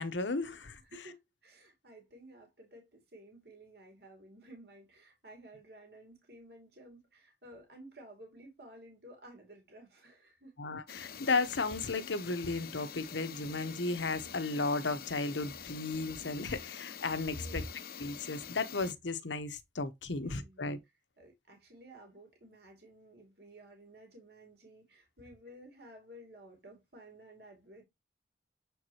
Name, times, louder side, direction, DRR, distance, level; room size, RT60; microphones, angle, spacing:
voice 1, 0.0-0.8 10.6-17.6 18.0-20.8, left 3 dB, 90° left, 1.0 m, -34 dB
voice 2, 0.8-10.6 17.4-17.6 20.1-20.7 21.2-27.8, right 1 dB, 60° right, 2.5 m, -54 dB
sound 1, 10.9-18.9, left 8 dB, 55° left, 0.6 m, -46 dB
7.2 x 4.7 x 2.9 m
head